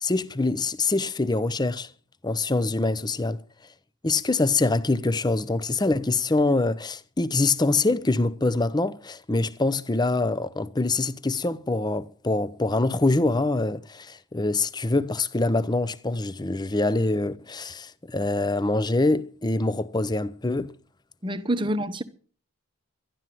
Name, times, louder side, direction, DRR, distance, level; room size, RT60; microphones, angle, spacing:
voice 1, 0.0-1.9 2.2-3.4 4.0-20.7, left 2 dB, 20° left, 0.6 m, -24 dB
voice 2, 21.2-22.0, right 1 dB, 20° right, 0.9 m, -27 dB
12.5 x 11.5 x 7.6 m
head